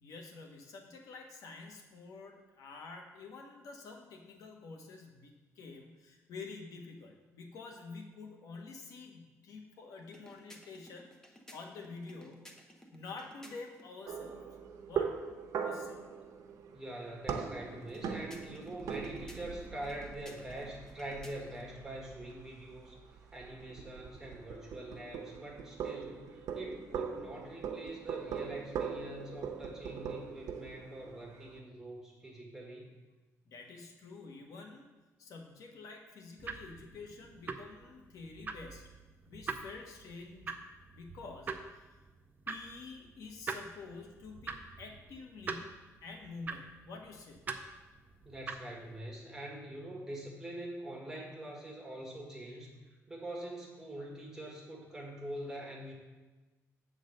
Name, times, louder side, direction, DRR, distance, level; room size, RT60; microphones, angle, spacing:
voice 1, 0.0-12.5 12.9-14.4 14.9-15.2 15.6-16.0 33.5-34.9 35.2-39.0 39.2-40.7 40.9-41.9 42.5-47.4, left 4 dB, 90° left, 2 dB, 1.1 m, -48 dB
sound 1, 10.0-13.9 17.8-21.7, equal, 10° left, 0.7 m, -57 dB
sound 2, 14.1-31.6, right 6 dB, 90° right, 0.8 m, -41 dB
voice 2, 16.7-32.9 48.2-55.9, right 1 dB, 10° right, -3 dB, 1.7 m, -44 dB
sound 3, 36.4-49.0, right 4 dB, 30° right, 0.5 m, -45 dB
7.8 x 3.9 x 6.4 m, 1.2 s
wide cardioid pair, 165°, 6 cm